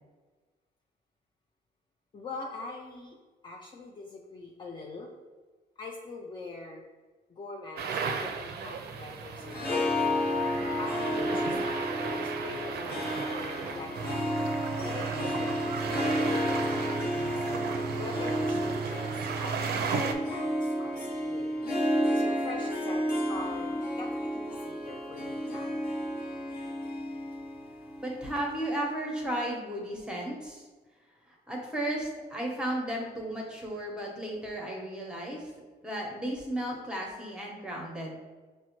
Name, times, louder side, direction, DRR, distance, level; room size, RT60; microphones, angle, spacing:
voice 1, 2.1-3.2 3.4-5.1 5.8-6.8 7.3-10.4 10.8-11.6 12.0-14.3 14.8-17.4 17.9-21.0 21.2-21.6 22.1-25.8, left 3 dB, 30° left, -1 dB, 0.4 m, -43 dB
sound 1, 7.8-20.1, right 5 dB, 70° right, 0.4 m, -35 dB
Harp, 9.4-28.8, equal, 60° left, 0.8 m, -32 dB
voice 2, 28.0-30.6 31.5-35.5 35.8-38.1, right 1 dB, 5° right, -1 dB, 0.8 m, -34 dB
6.0 x 2.1 x 3.0 m, 1.3 s
cardioid pair, 135°, 17 cm